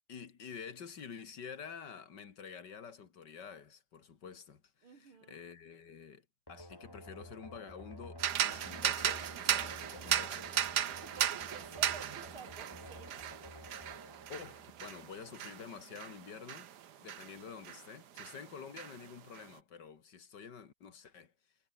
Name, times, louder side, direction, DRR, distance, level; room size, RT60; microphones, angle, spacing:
voice 1, 0.1-6.2 6.5-10.6 14.3-16.7 17.0-21.3, left 6 dB, 55° left, 2.4 m, -49 dB
voice 2, 4.8-5.4 11.0-13.4, right 6 dB, 75° right, 3.5 m, -52 dB
sound 1, 6.5-15.2, equal, 10° left, 7.4 m, -52 dB
sound 2, 8.2-17.9 18.2-19.4, right 10 dB, 55° right, 1.5 m, -36 dB
omnidirectional pair, 2.3 m